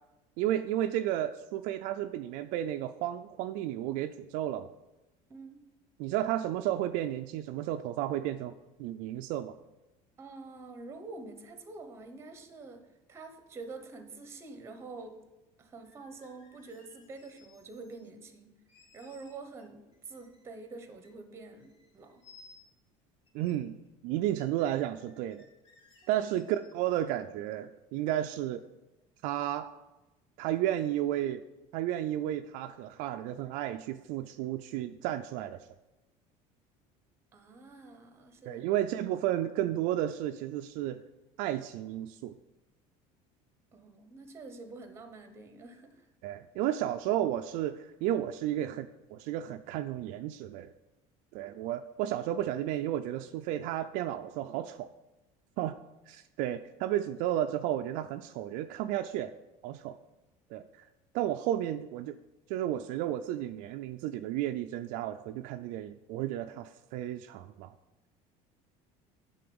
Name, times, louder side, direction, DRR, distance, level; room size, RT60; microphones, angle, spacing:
voice 1, 0.4-4.7 6.0-9.5 23.3-23.8 24.0-25.4 26.1-28.6 29.2-29.7 30.4-31.4 31.7-35.6 38.5-41.0 41.4-42.3 46.2-50.7 51.3-54.9 55.6-55.8 56.1-59.3 59.6-60.0 60.5-60.6 61.1-62.1 62.5-67.7, right 12 dB, 60° right, 8 dB, 0.4 m, -32 dB
voice 2, 10.2-15.2 15.6-18.6 18.9-22.2 37.3-38.7 43.7-46.1, right 3 dB, 15° right, 7 dB, 0.9 m, -47 dB
sound 1, 15.8-18.1 18.7-19.6 19.9-21.3 21.6-22.9 23.3-23.5 23.9-24.0 24.3-27.1, left 4 dB, 40° left, 1.6 m, -61 dB
9.6 x 3.9 x 6.9 m, 1.0 s
cardioid pair, 175°, 15 cm